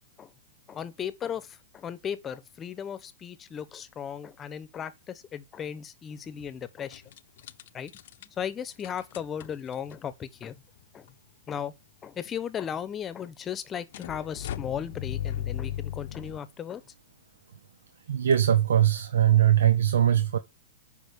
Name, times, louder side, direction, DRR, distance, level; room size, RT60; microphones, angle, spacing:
voice 1, 0.7-7.0 7.7-7.9 8.4-10.6 10.9-11.1 11.5-11.7 12.0-16.8, left 8 dB, 20° left, 1.0 m, -36 dB
sound 1, 6.1-6.5 6.9-8.3 8.8-10.0 10.8-10.9 11.1-11.2 13.9-16.4, left 11 dB, 65° left, 0.7 m, -36 dB
voice 2, 18.1-20.4, right 10 dB, 90° right, 0.9 m, -21 dB
7.9 x 5.3 x 6.8 m
hypercardioid pair, 140°, 0 cm